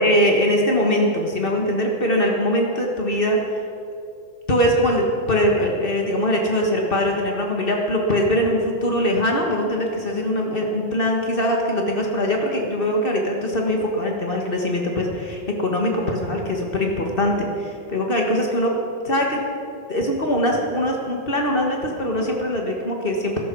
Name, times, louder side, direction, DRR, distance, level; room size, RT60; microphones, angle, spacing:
voice 1, 0.0-3.6 4.5-18.8 19.0-19.4 19.9-23.4, equal, 60° left, 0 dB, 0.5 m, -22 dB
15.0 x 13.0 x 6.1 m, 2.6 s
omnidirectional pair, 3.6 m